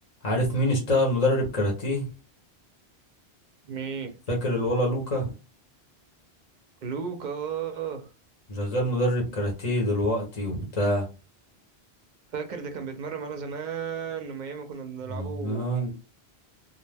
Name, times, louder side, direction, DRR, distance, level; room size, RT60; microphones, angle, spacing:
voice 1, 0.2-2.1 4.3-5.3 8.5-11.1 15.1-15.9, left 1 dB, 40° left, 0.8 m, -25 dB
voice 2, 3.6-4.2 6.8-8.1 12.3-15.9, right 6 dB, 55° right, 0.6 m, -34 dB
2.3 x 2.1 x 3.2 m
omnidirectional pair, 1.1 m